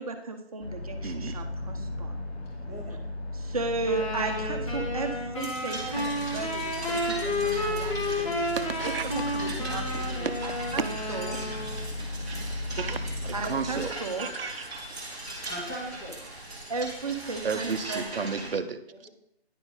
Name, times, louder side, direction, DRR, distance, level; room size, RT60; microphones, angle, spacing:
voice 1, 0.0-2.1 3.4-10.3 10.7-11.4 13.3-14.3 16.7-18.3, right 4 dB, 35° right, 5 dB, 0.8 m, -35 dB
sound 1, 0.6-13.9, left 2 dB, 75° left, 1.6 m, -36 dB
voice 2, 1.0-1.4 8.6-9.4 9.9-10.4 11.3-11.4 12.8-13.9 14.2-14.8 17.4-18.8, right 5 dB, 60° right, 9 dB, 0.7 m, -33 dB
voice 3, 2.4-3.0 15.5-16.2 18.9-19.1, equal, 15° left, -4 dB, 1.6 m, -40 dB
sound 2, 3.8-11.8, left 1 dB, 30° left, 1.7 m, -32 dB
sound 3, 5.4-18.5, right 1 dB, 5° right, 0.6 m, -40 dB
9.8 x 4.5 x 3.8 m, 0.75 s
figure-of-eight pair, 160°, 32 cm